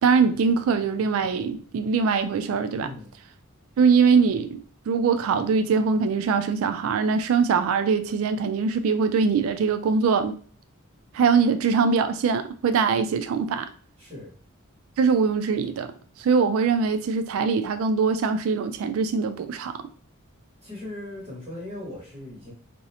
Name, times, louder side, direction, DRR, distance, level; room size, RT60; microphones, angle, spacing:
voice 1, 0.0-2.9 3.8-4.6 4.9-10.3 11.1-13.7 15.0-15.9 16.2-19.8, right 5 dB, 65° right, 0.3 m, -22 dB
voice 2, 2.8-3.1 14.0-14.3 20.6-22.5, left 1 dB, 30° right, 0.9 m, -38 dB
2.5 x 2.0 x 2.7 m
head